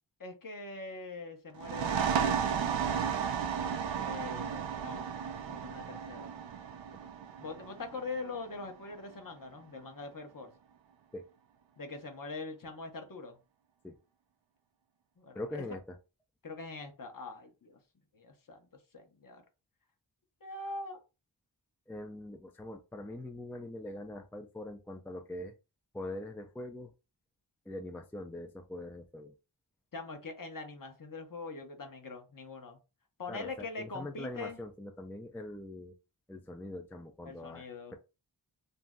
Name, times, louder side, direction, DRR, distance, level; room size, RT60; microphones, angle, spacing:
voice 1, 0.2-2.4 4.0-5.1 5.5-6.3 7.4-10.5 11.8-13.4 15.2-15.4 16.4-17.8 18.1-18.7 18.9-19.4 20.4-21.0 29.9-32.8 33.2-34.6 37.2-38.0, left 3 dB, 45° left, 0.8 m, -43 dB
sound 1, 1.6-9.0, right 7 dB, 75° right, 0.5 m, -34 dB
voice 2, 15.3-16.0 21.9-25.5 25.9-26.9 27.7-29.3 33.3-35.9 36.3-38.0, left 1 dB, 5° left, 0.4 m, -43 dB
2.6 x 2.0 x 3.5 m
cardioid pair, 45°, 45 cm